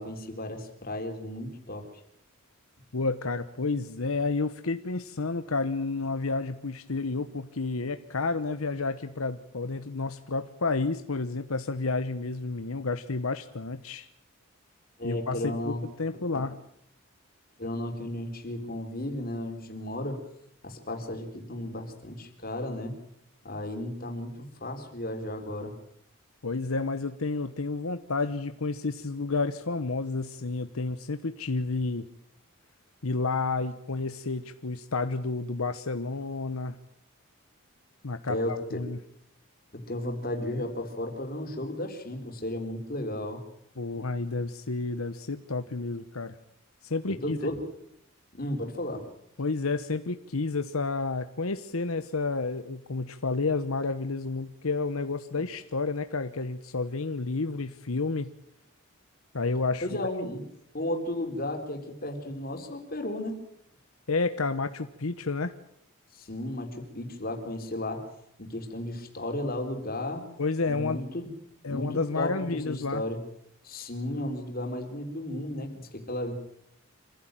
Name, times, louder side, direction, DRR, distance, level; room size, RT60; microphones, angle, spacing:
voice 1, 0.0-1.9 15.0-15.8 16.1-16.5 17.6-20.2 20.6-22.9 23.4-25.7 38.3-38.8 39.7-43.4 47.1-47.7 48.3-49.1 59.8-60.4 60.7-63.4 66.1-68.1 68.4-70.3 70.7-71.3 71.7-73.2 73.6-76.3, left 1 dB, 40° left, 4 dB, 4.0 m, -34 dB
voice 2, 2.9-14.1 15.0-16.6 26.4-32.0 33.0-36.8 38.0-39.0 43.8-46.4 46.8-47.4 49.4-58.3 59.3-59.9 64.1-65.5 70.4-71.0 71.6-73.0, left 3 dB, 80° left, 10 dB, 1.0 m, -30 dB
26.5 x 16.0 x 9.1 m, 0.74 s
head